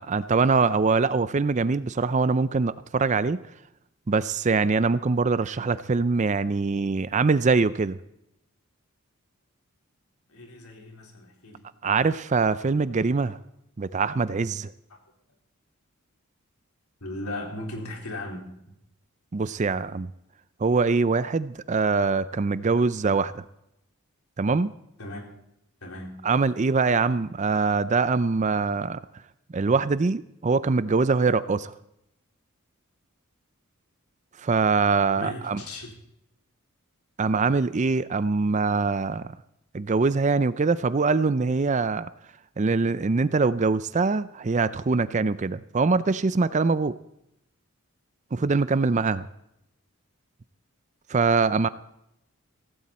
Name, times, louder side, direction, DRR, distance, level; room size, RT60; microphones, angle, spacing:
voice 1, 0.0-3.4 4.1-8.0 11.8-13.4 13.8-14.7 19.3-20.1 20.6-23.4 24.4-24.7 26.2-29.0 29.5-31.7 34.4-35.6 37.2-39.4 39.7-42.1 42.6-46.9 48.3-49.3 51.1-51.7, right 4 dB, 35° right, 15 dB, 0.4 m, -23 dB
voice 2, 10.3-11.6 14.9-15.0 17.0-18.5 25.0-25.3 25.8-26.2 35.2-35.9, left 1 dB, 90° left, 1 dB, 4.1 m, -37 dB
16.5 x 16.0 x 4.3 m, 0.81 s
head